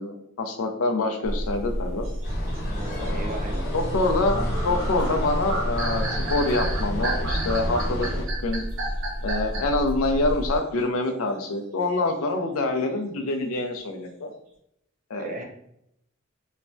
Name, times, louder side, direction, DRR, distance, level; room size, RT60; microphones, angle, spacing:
voice 1, 0.0-2.1 3.0-3.3 3.7-8.6 9.2-14.3 15.1-15.3, left 2 dB, 75° left, 5 dB, 0.5 m, -26 dB
sound 1, 1.2-10.6, equal, 5° left, 1.0 m, -30 dB
sound 2, 2.0-9.8, right 2 dB, 70° right, 0.7 m, -33 dB
sound 3, 2.2-8.2, equal, 50° left, 0.8 m, -32 dB
voice 2, 2.6-3.7 15.1-15.4, right 2 dB, 40° right, 3 dB, 0.4 m, -36 dB
3.1 x 2.1 x 2.6 m, 0.76 s
head